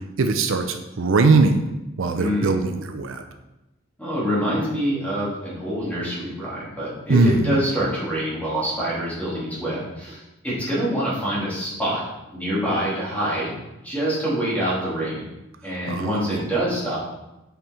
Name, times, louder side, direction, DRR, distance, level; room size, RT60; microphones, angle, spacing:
voice 1, 0.2-1.6 2.0-3.2 7.1-7.6 15.9-16.6, right 3 dB, 70° right, 7 dB, 0.5 m, -20 dB
voice 2, 2.1-2.6 4.0-12.0 12.3-13.5 13.8-15.3 15.6-17.0, equal, 10° left, -8 dB, 2.7 m, -26 dB
5.8 x 5.4 x 4.4 m, 0.97 s
head